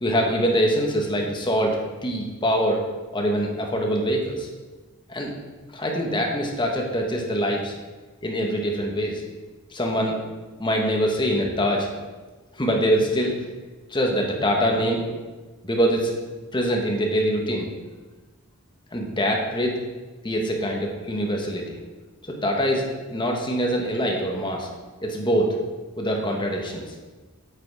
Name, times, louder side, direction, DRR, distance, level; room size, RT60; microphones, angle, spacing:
voice 1, 0.0-1.8 2.0-2.8 3.1-4.5 5.1-5.3 5.7-7.7 8.2-9.2 9.7-10.2 10.6-11.9 12.5-13.3 13.9-15.2 15.6-16.1 16.5-17.7 18.9-19.8 20.2-21.8 22.3-24.7 25.0-25.6 26.0-27.0, equal, 20° left, 0 dB, 1.3 m, -24 dB
8.2 x 7.0 x 4.9 m, 1.3 s
head